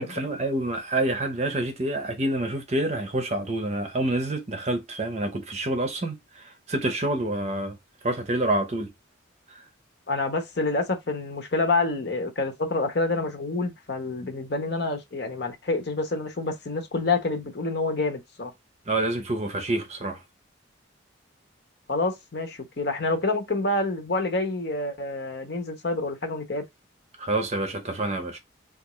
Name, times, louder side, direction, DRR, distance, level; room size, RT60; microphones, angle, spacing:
voice 1, 0.0-7.8 8.0-8.9 9.5-9.6 18.9-20.2 27.2-28.4, right 1 dB, 35° right, 0.6 m, -27 dB
voice 2, 10.1-18.5 21.9-26.6, left 3 dB, 55° left, 0.9 m, -27 dB
3.5 x 2.4 x 3.0 m
head